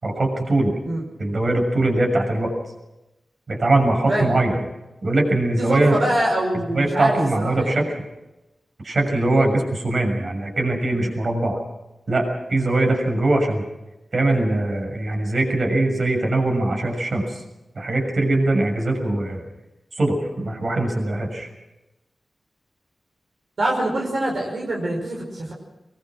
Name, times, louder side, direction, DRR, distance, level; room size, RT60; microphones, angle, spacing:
voice 1, 0.0-0.8 1.2-2.5 3.5-4.6 5.0-6.0 6.7-7.8 8.8-11.6 12.1-13.6 14.1-17.4 17.8-19.4 19.9-21.5, right 2 dB, 55° right, 3 dB, 6.5 m, -21 dB
voice 2, 5.6-7.9 23.6-25.5, right 1 dB, 70° right, -1 dB, 5.3 m, -24 dB
23.0 x 22.0 x 6.2 m, 0.98 s
wide cardioid pair, 90°, 0 cm